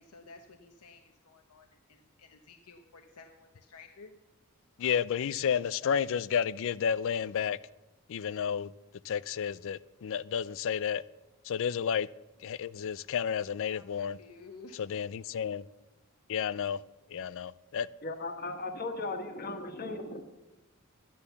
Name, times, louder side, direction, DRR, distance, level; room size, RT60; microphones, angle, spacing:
voice 1, 0.0-4.1 13.7-14.8, left 3 dB, 80° left, 0.9 m, -53 dB
voice 2, 4.8-7.6 8.1-8.7 9.1-11.0 11.5-12.1 12.4-14.2 14.8-15.6 16.3-16.8 17.1-17.9, left 7 dB, 60° left, 0.4 m, -31 dB
voice 3, 18.0-20.2, left 2 dB, 45° left, 1.4 m, -37 dB
11.5 x 10.5 x 7.0 m
head